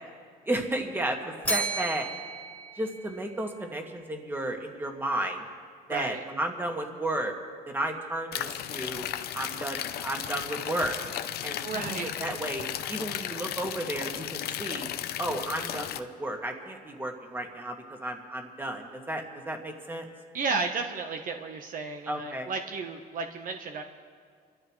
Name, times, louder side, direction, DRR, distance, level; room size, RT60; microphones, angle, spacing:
voice 1, 0.5-2.1 2.8-5.4 5.9-7.3 7.7-9.1 9.3-11.0 11.4-14.9 15.2-20.1 22.1-22.5, right 1 dB, 10° right, 2 dB, 1.9 m, -33 dB
Bell, 1.4-3.7, right 2 dB, 10° left, 2.3 m, -33 dB
voice 2, 5.9-6.2 11.6-12.1 20.3-23.8, right 4 dB, 55° right, 4 dB, 1.1 m, -33 dB
sound 1, 8.3-16.0, left 11 dB, 70° left, 0.7 m, -35 dB
29.0 x 13.5 x 3.2 m, 2.1 s
cardioid pair, 110°, 17 cm